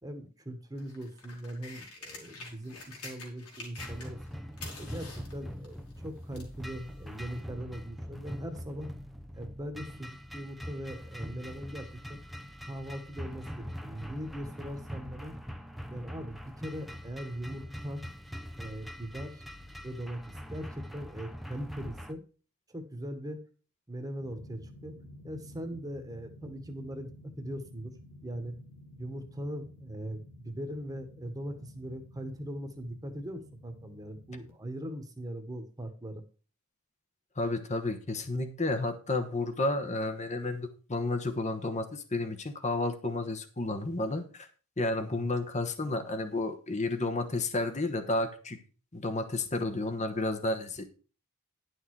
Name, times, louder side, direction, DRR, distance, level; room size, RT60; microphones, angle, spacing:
voice 1, 0.0-4.2 4.8-8.9 9.3-12.2 12.6-15.3 15.9-18.1 18.6-19.4 19.8-22.2 22.7-23.4 23.9-25.0 25.2-27.1 27.4-28.0 28.2-28.6 29.0-36.2 45.0-45.3, equal, 15° right, 6 dB, 1.5 m, -40 dB
sound 1, 0.7-4.3 4.5-6.6 7.4-7.5, left 3 dB, 85° left, 4.1 m, -47 dB
sound 2, 3.8-22.1, equal, ahead, 0.6 m, -43 dB
sound 3, 24.2-34.5, left 1 dB, 55° left, 2.4 m, -52 dB
voice 2, 37.4-44.5 44.8-48.6 48.9-50.9, left 2 dB, 30° left, 8 dB, 1.2 m, -31 dB
11.0 x 6.5 x 4.8 m, 0.38 s
head